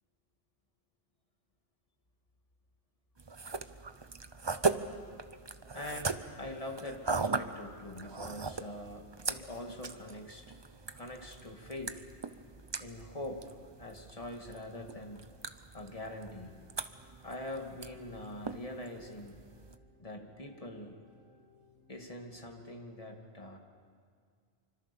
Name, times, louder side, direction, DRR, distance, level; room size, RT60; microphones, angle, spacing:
sound 1, 3.2-19.8, right 4 dB, 25° right, 0.7 m, -39 dB
voice 1, 5.7-10.4 11.0-12.1 12.8-13.5 13.8-15.3 15.7-16.5 17.2-19.4 20.0-21.0 21.9-23.6, left 1 dB, 30° left, 3 dB, 2.3 m, -43 dB
sound 2, 10.4-22.3, left 1 dB, 70° left, 6.2 m, -66 dB
26.0 x 25.0 x 7.0 m, 2.1 s
omnidirectional pair, 1.2 m